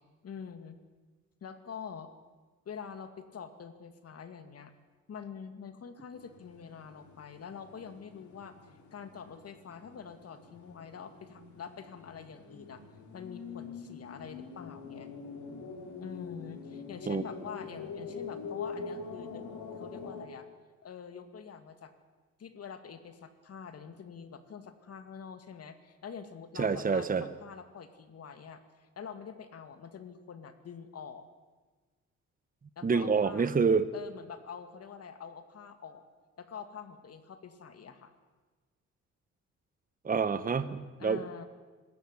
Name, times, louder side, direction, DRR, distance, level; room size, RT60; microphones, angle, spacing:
voice 1, 0.2-0.8 1.4-2.1 2.7-4.7 5.1-12.8 13.1-15.1 16.0-19.4 19.7-20.5 20.8-21.9 22.4-31.2 32.8-33.5 33.9-36.0 36.4-38.1 41.0-41.5, left 6 dB, 55° left, 9 dB, 2.4 m, -45 dB
sound 1, 6.1-20.2, left 5 dB, 70° left, 4.1 m, -45 dB
voice 2, 26.6-27.2 32.8-33.9 40.0-41.2, right 5 dB, 30° right, 12 dB, 1.2 m, -27 dB
25.5 x 14.0 x 9.8 m, 1.4 s
cardioid pair, 90°, 30 cm